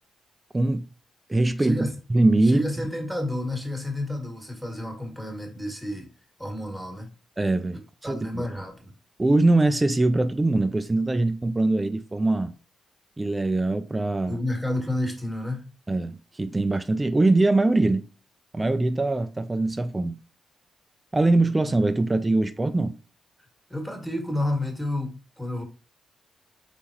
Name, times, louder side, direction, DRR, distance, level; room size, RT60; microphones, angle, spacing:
voice 1, 0.5-0.9 1.3-2.6 7.4-8.4 9.2-12.5 13.2-14.4 15.9-18.0 18.5-20.2 21.1-23.0, right 2 dB, 20° right, 0.5 m, -22 dB
voice 2, 2.5-6.1 6.4-7.1 8.0-8.9 14.3-15.7 23.7-25.6, left 1 dB, 5° left, 1.8 m, -30 dB
4.1 x 3.6 x 3.0 m
supercardioid pair, 50°, 0 cm